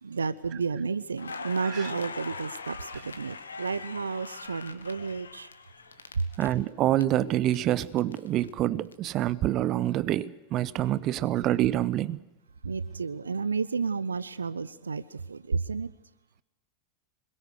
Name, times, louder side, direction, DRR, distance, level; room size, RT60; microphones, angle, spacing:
voice 1, 0.0-5.5 6.1-6.3 12.6-15.9, right 5 dB, 75° right, 0.8 m, -31 dB
Crackle, 1.2-7.0 7.3-9.1, left 4 dB, 75° left, 2.0 m, -42 dB
voice 2, 6.4-12.2, right 13 dB, 35° right, 0.9 m, -26 dB
26.0 x 22.0 x 6.6 m
figure-of-eight pair, 90°, 0 cm